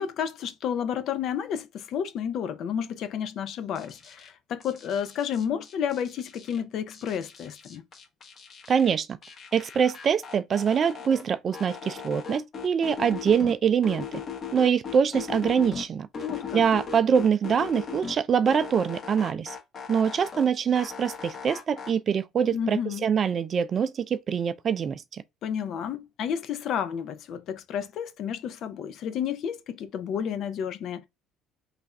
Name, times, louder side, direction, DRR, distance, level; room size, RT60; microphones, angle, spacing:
voice 1, 0.0-7.8 16.2-16.6 22.5-23.1 25.4-31.1, left 8 dB, 60° left, 0.5 m, -31 dB
sound 1, 3.8-4.3 4.6-6.6 6.9-8.9 9.2-11.2 11.5-13.5 13.8-15.9 16.1-18.2 18.4-20.5 20.8-21.9, left 6 dB, 40° left, 1.3 m, -38 dB
voice 2, 8.7-9.2 9.5-14.1 14.5-16.1 16.5-19.6 19.9-25.2, right 7 dB, 40° right, 0.4 m, -24 dB
3.4 x 2.4 x 4.0 m
cardioid pair, 105°, 0 cm